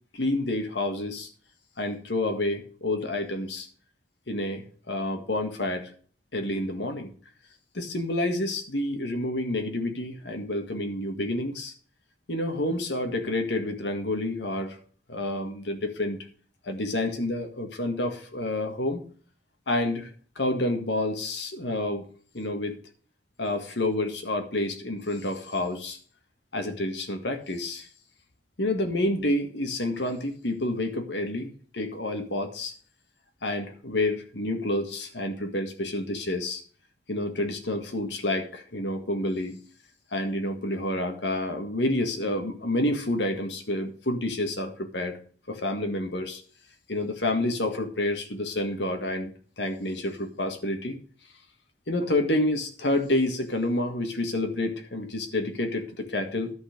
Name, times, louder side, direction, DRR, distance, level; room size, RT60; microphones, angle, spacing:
voice 1, 0.1-1.3 1.8-3.7 4.3-5.9 6.3-7.1 7.7-11.7 12.3-14.8 15.1-16.3 16.6-19.0 19.7-22.1 22.3-22.8 23.4-26.0 26.5-27.9 28.6-32.7 33.4-36.6 37.1-39.6 40.1-45.2 45.5-46.4 46.9-50.9 51.9-56.5, left 1 dB, 90° left, 5 dB, 1.8 m, -29 dB
11.5 x 5.6 x 6.7 m, 0.43 s
head